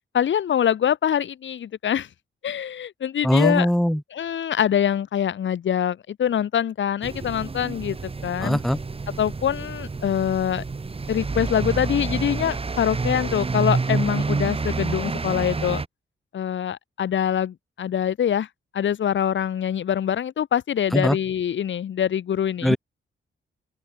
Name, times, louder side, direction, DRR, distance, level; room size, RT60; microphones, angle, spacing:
voice 1, 0.1-2.1 2.4-3.7 4.1-8.0 8.2-8.6 9.2-10.6 11.1-15.8 16.3-18.5 18.7-22.8, left 9 dB, 70° left, 1.1 m, -24 dB
voice 2, 3.2-4.0 8.4-8.8 20.9-21.2 22.6-22.8, equal, ahead, 0.4 m, -20 dB
sound 1, 7.0-15.9, right 4 dB, 30° right, 1.5 m, -28 dB
open air
cardioid pair, 90°, 20 cm